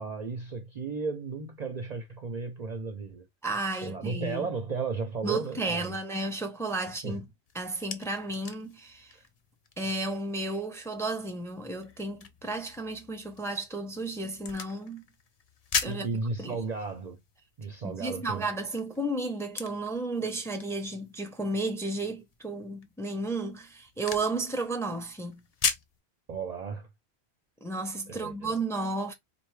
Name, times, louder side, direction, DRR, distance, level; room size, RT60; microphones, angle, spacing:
voice 1, 0.0-3.3 3.8-6.0 7.0-7.2 15.8-17.2 17.6-18.5 26.3-26.9 28.1-28.6, right 4 dB, 50° right, 0.6 m, -34 dB
voice 2, 3.4-4.5 5.2-7.3 7.5-9.2 9.8-15.0 15.8-16.1 16.4-16.6 17.8-25.4 27.6-29.1, right 2 dB, 5° left, 0.6 m, -33 dB
sound 1, 7.5-26.0, left 5 dB, 45° left, 0.5 m, -40 dB
4.4 x 2.6 x 3.1 m
omnidirectional pair, 1.1 m